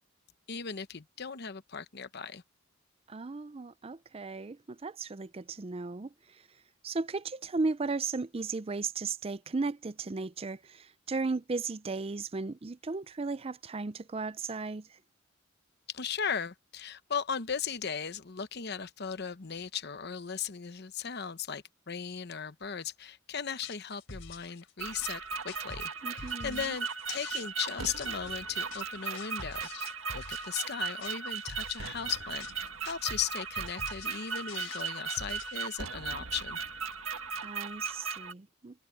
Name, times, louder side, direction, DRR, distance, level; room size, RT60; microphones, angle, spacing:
voice 1, 0.5-2.4 15.9-29.7 30.1-36.6, left 7 dB, 50° left, 0.9 m, -37 dB
voice 2, 3.1-6.5 6.8-15.0 26.0-26.7 37.4-38.8, right 3 dB, 30° right, 0.5 m, -36 dB
sound 1, 23.5-35.6, left 4 dB, 70° left, 3.7 m, -47 dB
sound 2, 24.8-38.3, right 5 dB, 85° right, 1.8 m, -37 dB
head